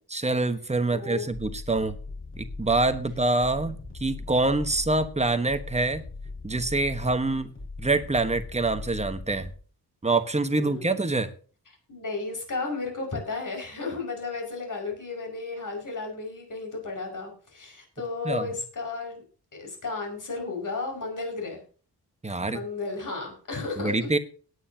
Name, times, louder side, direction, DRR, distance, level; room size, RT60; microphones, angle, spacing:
voice 1, 0.1-2.0 2.4-6.0 6.4-7.5 7.8-9.5 10.0-11.3 18.2-18.5 22.2-22.6 23.8-24.2, right 2 dB, 15° right, 9 dB, 1.2 m, -25 dB
voice 2, 0.9-1.3 10.6-11.0 11.9-19.2 19.6-21.6 22.4-24.1, left 3 dB, 50° left, 1 dB, 5.8 m, -34 dB
sound 1, 1.3-9.6, left 3 dB, 30° left, 5.2 m, -40 dB
18.0 x 9.7 x 2.9 m, 0.40 s
wide cardioid pair, 140°, 40 cm